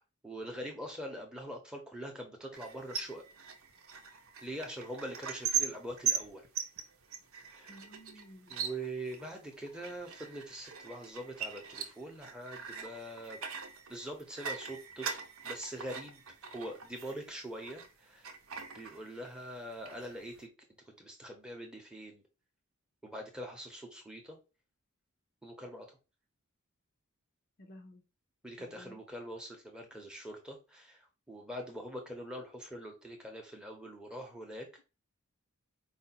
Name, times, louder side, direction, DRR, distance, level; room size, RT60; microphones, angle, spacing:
voice 1, 0.0-3.2 4.4-6.4 7.5-7.8 8.5-13.4 13.9-18.3 18.7-20.5 21.0-22.2 23.0-24.4 25.4-26.0 28.4-34.8, right 1 dB, 5° right, 0.8 m, -43 dB
sound 1, 2.5-17.9 18.2-19.4 19.7-20.4, right 7 dB, 70° right, 0.7 m, -40 dB
voice 2, 7.7-8.6 27.6-28.0 28.6-29.0, equal, 45° left, 0.6 m, -53 dB
4.8 x 2.1 x 4.1 m
head